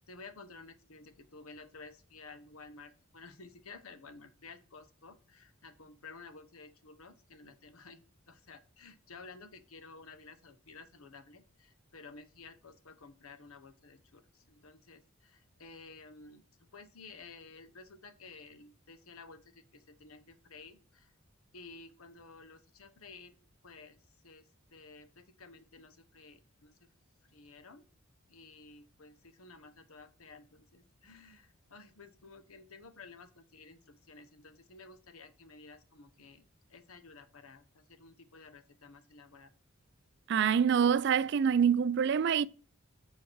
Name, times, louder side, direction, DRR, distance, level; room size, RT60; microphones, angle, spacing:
voice 1, 0.1-21.1 21.5-23.4 23.6-26.9 27.2-27.8 28.3-39.5, left 4 dB, 80° left, 1.0 m, -53 dB
voice 2, 40.3-42.5, right 7 dB, 50° right, 0.3 m, -26 dB
7.3 x 4.6 x 6.3 m
head